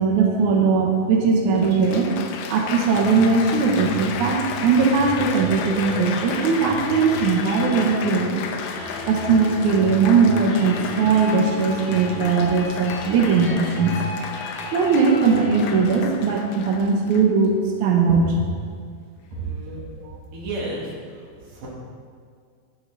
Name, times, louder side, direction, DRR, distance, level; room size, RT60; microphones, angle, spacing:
voice 1, 0.0-2.1 2.5-8.4 9.1-14.0 14.7-18.5 19.7-20.1, right 5 dB, 70° right, 1 dB, 1.8 m, -19 dB
Applause, 0.8-0.9 1.5-17.5 18.2-18.5, left 6 dB, 80° left, 2.0 m, -34 dB
sound 1, 4.8-15.9, left 2 dB, 55° left, 1.5 m, -35 dB
voice 2, 19.3-19.8 20.3-21.7, right 2 dB, 55° right, -5 dB, 3.9 m, -32 dB
12.0 x 11.0 x 3.9 m, 2.1 s
omnidirectional pair, 4.9 m